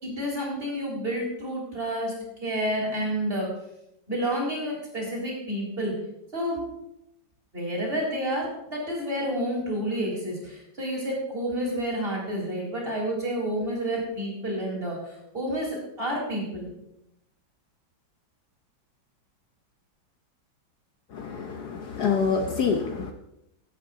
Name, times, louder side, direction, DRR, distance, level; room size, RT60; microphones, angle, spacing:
voice 1, 0.0-3.5 4.1-6.0 6.3-6.6 7.5-16.7, equal, 30° right, -3 dB, 4.1 m, -30 dB
voice 2, 21.1-23.1, left 5 dB, 60° left, 4 dB, 1.3 m, -26 dB
15.5 x 8.4 x 3.8 m, 0.82 s
omnidirectional pair, 2.1 m